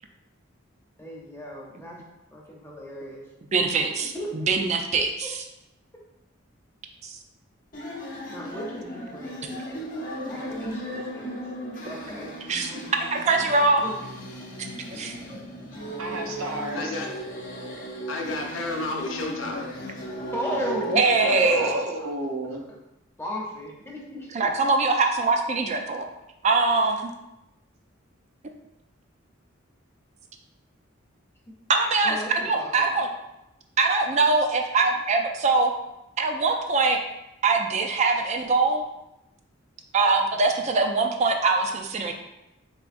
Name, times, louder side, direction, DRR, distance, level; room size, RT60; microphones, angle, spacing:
voice 1, 1.0-3.2 4.1-4.5 4.9-5.3 8.3-11.3 11.9-12.3 12.7-12.8 13.8-13.9 20.3-22.1 22.4-22.6 23.2-24.7 31.5-33.0 40.3-40.4, left 1 dB, 10° left, -3 dB, 0.7 m, -36 dB
voice 2, 3.5-5.4 7.0-7.2 12.5-12.7 13.1-13.8 14.9-15.1 20.9-21.7 24.3-26.1 26.4-27.1 31.7-32.2 32.5-33.1 33.8-35.7 36.2-37.0 37.4-38.8 39.9-42.1, right 3 dB, 35° right, 3 dB, 0.4 m, -22 dB
sound 1, 7.7-21.7, right 1 dB, 45° left, 0.8 m, -36 dB
voice 3, 16.0-16.9 21.6-22.6, right 2 dB, 75° right, 1 dB, 0.7 m, -32 dB
voice 4, 16.7-17.1 18.1-19.9, left 2 dB, 75° left, 2 dB, 0.6 m, -31 dB
3.8 x 3.6 x 2.5 m, 0.90 s
head